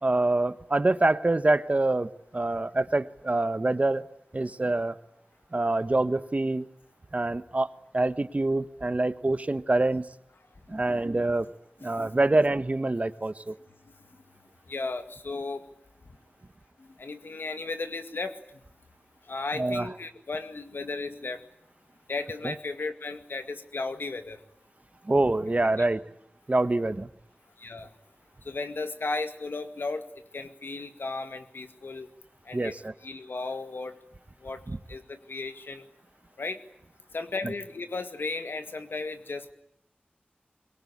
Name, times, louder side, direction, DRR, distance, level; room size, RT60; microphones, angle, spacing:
voice 1, 0.0-4.0 4.3-5.0 5.5-6.7 7.1-7.7 7.9-10.1 10.7-11.5 11.8-13.6 19.6-19.9 22.4-22.5 25.0-26.0 26.5-27.1 32.5-32.9 34.7-34.8 37.4-37.5, right 2 dB, 40° right, 13 dB, 1.2 m, -25 dB
voice 2, 10.7-11.1 11.8-12.3 14.7-15.6 16.8-18.3 19.3-21.4 22.1-24.4 25.8-25.9 27.6-27.9 28.4-30.1 30.3-32.1 32.5-32.7 33.0-33.9 34.4-34.6 34.9-35.9 36.4-36.6 37.1-39.5, left 3 dB, 90° left, 8 dB, 2.0 m, -35 dB
23.5 x 22.5 x 9.9 m, 0.73 s
wide cardioid pair, 55°, 4 cm